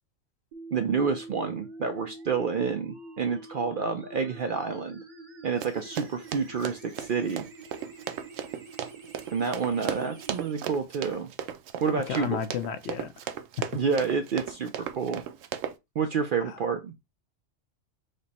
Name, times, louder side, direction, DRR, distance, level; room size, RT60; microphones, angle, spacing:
sound 1, 0.5-10.5, right 2 dB, 40° right, 1.0 m, -46 dB
voice 1, 0.7-5.0 5.4-7.5 9.3-11.3 11.8-12.4 13.7-15.2 16.0-16.9, right 5 dB, 60° right, 0.5 m, -29 dB
Run, 5.6-15.8, right 9 dB, 85° right, 1.0 m, -36 dB
voice 2, 11.9-13.1 13.6-13.7 16.4-16.6, left 8 dB, 65° left, 0.8 m, -32 dB
5.1 x 2.1 x 4.1 m
omnidirectional pair, 1.3 m